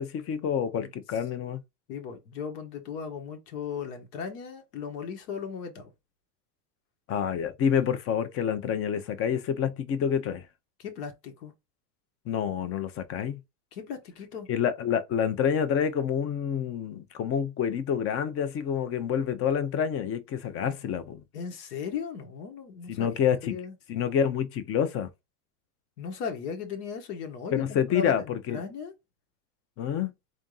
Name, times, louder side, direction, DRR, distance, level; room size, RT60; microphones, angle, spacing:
voice 1, 0.0-1.6 7.1-10.5 12.3-13.4 14.5-21.2 22.9-23.6 23.9-25.1 27.5-28.6 29.8-30.1, left 8 dB, 30° left, 0.5 m, -28 dB
voice 2, 1.9-5.9 10.8-11.5 13.7-14.5 21.3-23.7 26.0-28.9, left 6 dB, 80° left, 1.4 m, -37 dB
3.6 x 2.6 x 3.9 m
supercardioid pair, 115°, 47 cm